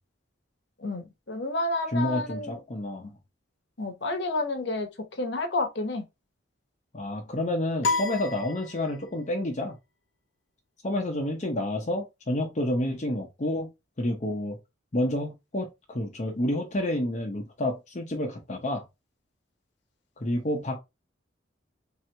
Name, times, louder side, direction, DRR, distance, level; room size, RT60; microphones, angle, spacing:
voice 1, 0.8-2.6 3.0-3.1 3.8-4.9 5.2-6.0, left 2 dB, 60° left, 1.0 m, -30 dB
voice 2, 1.9-3.2 6.9-9.8 10.8-13.7 14.0-14.6 14.9-18.8 20.2-20.8, left 1 dB, 35° left, 0.7 m, -29 dB
sound 1, 7.8-9.3, left 3 dB, 80° left, 0.6 m, -30 dB
3.5 x 3.0 x 3.3 m
head